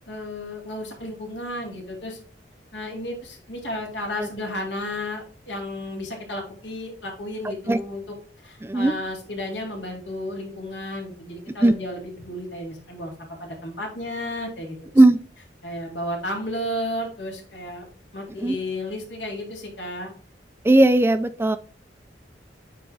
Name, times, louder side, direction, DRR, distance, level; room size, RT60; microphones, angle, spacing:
voice 1, 0.1-2.2 2.7-8.0 8.4-13.1 13.4-14.8 15.6-17.9 18.1-20.1, left 1 dB, 80° left, -1 dB, 3.0 m, -33 dB
voice 2, 7.4-7.8 8.6-8.9 11.6-11.7 14.9-15.2 18.4-18.6 20.6-21.6, right 1 dB, 15° right, 12 dB, 0.4 m, -17 dB
9.2 x 3.5 x 3.4 m, 0.43 s
head